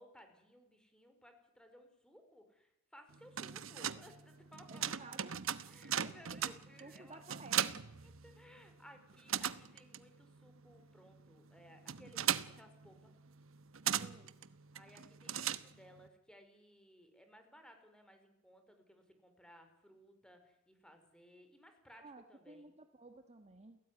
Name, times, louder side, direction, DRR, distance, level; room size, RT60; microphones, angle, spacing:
voice 1, 0.0-5.3 5.7-7.2 8.2-13.1 14.7-22.7, equal, 5° left, 6 dB, 4.5 m, -60 dB
sound 1, 3.1-8.7 9.0-16.1, right 9 dB, 75° right, 1.1 m, -39 dB
voice 2, 4.7-5.4 6.0-6.2 6.8-7.8 9.3-9.4 14.0-14.3 21.9-23.8, right 2 dB, 30° right, 7 dB, 1.5 m, -54 dB
29.0 x 17.5 x 9.5 m, 0.87 s
head